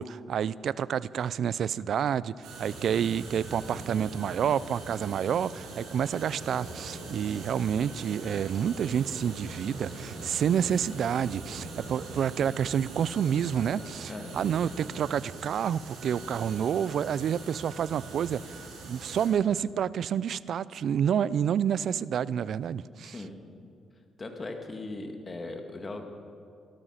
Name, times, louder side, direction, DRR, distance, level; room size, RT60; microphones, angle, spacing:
voice 1, 0.0-18.6 18.8-23.1, right 8 dB, 65° right, 19 dB, 0.4 m, -29 dB
sound 1, 2.4-19.3, right 3 dB, 90° right, 4.3 m, -42 dB
voice 2, 23.0-23.4 24.2-26.1, left 2 dB, 30° left, 4 dB, 2.0 m, -39 dB
18.0 x 13.0 x 5.7 m, 2.3 s
cardioid pair, 90°, 0 cm